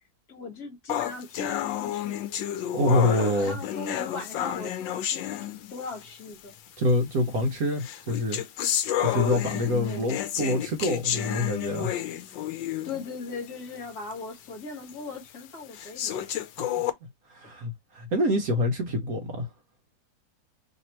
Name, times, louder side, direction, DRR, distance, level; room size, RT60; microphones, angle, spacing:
voice 1, 0.3-2.2 2.8-6.5 9.9-10.1 12.8-16.3, left 4 dB, 55° left, 1.8 m, -39 dB
sound 1, 0.9-6.0 6.9-7.0 7.8-13.1 13.5-13.6 14.1-14.2 14.9-15.0 15.7-16.9, left 11 dB, 75° left, 1.4 m, -30 dB
voice 2, 2.7-3.6 6.8-8.4 8.7-11.9 16.6-16.8 17.3-19.5, left 1 dB, 55° right, 1.1 m, -26 dB
3.4 x 3.0 x 4.2 m
omnidirectional pair, 2.1 m